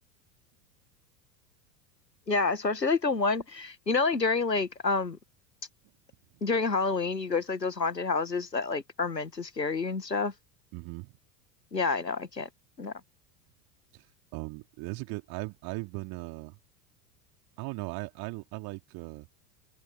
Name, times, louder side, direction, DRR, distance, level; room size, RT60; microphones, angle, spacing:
voice 1, 2.3-5.2 6.4-10.3 11.7-12.5 12.8-12.9, left 4 dB, 90° left, 1.5 m, -28 dB
voice 2, 10.7-11.1 13.9-14.0 14.3-16.6 17.6-19.3, right 26 dB, 45° right, 3.9 m, -38 dB
figure-of-eight pair, 80°, 48 cm